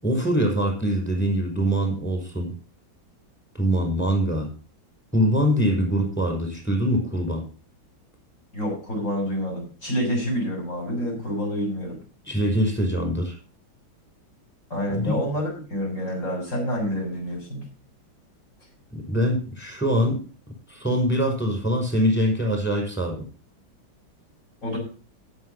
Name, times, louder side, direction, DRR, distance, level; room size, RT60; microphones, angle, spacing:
voice 1, 0.0-2.5 3.5-4.5 5.1-7.4 12.3-13.4 14.9-15.2 18.9-20.2 20.7-23.2, equal, 5° left, 2 dB, 5.6 m, -23 dB
voice 2, 8.5-12.0 14.7-17.7 24.6-24.8, equal, 35° left, -1 dB, 7.1 m, -28 dB
14.5 x 7.4 x 5.7 m, 0.38 s
omnidirectional pair, 2.2 m